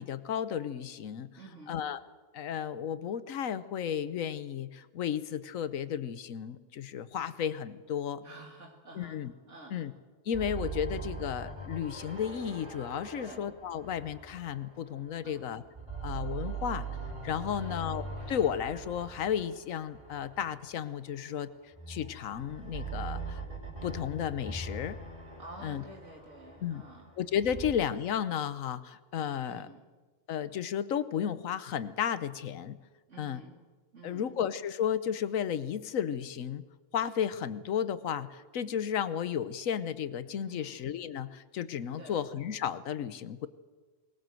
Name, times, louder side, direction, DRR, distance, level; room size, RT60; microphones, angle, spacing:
voice 1, 0.0-1.3 1.7-2.0 2.3-8.2 8.9-9.3 9.7-9.9 10.3-15.6 16.0-16.9 17.2-21.5 21.9-23.4 23.8-25.0 25.6-25.8 26.6-26.8 27.2-29.7 30.3-32.8 33.2-33.4 34.0-36.6 36.9-43.5, left 9 dB, 90° left, 14 dB, 1.3 m, -33 dB
voice 2, 1.4-1.8 8.2-9.2 9.5-9.9 13.1-13.5 15.2-15.6 17.5-17.9 25.4-27.2 29.5-29.9 33.1-33.6 33.9-34.4 40.5-40.8 42.0-42.3, right 2 dB, 65° right, 1 dB, 2.5 m, -50 dB
sound 1, 10.3-15.3 15.6-21.0 21.7-27.7, right 4 dB, 25° right, 4.5 m, -41 dB
20.5 x 19.0 x 7.7 m, 1.3 s
omnidirectional pair, 1.3 m